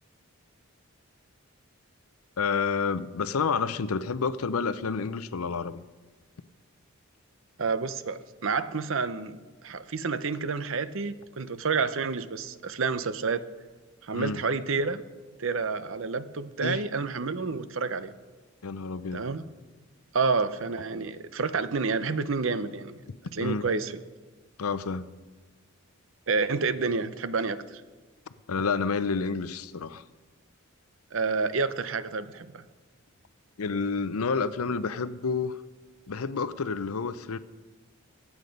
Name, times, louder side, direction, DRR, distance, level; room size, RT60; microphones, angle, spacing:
voice 1, 2.4-5.8 14.1-14.4 16.6-16.8 18.6-19.2 23.4-23.6 24.6-25.0 28.5-30.0 33.6-35.6 36.1-37.4, left 5 dB, 85° left, 14 dB, 0.6 m, -29 dB
voice 2, 7.6-13.5 14.0-15.0 15.4-18.1 19.1-19.4 20.1-24.0 26.3-27.8 31.1-32.6, right 4 dB, 65° right, 13 dB, 0.7 m, -29 dB
23.0 x 8.3 x 5.3 m, 1.3 s
head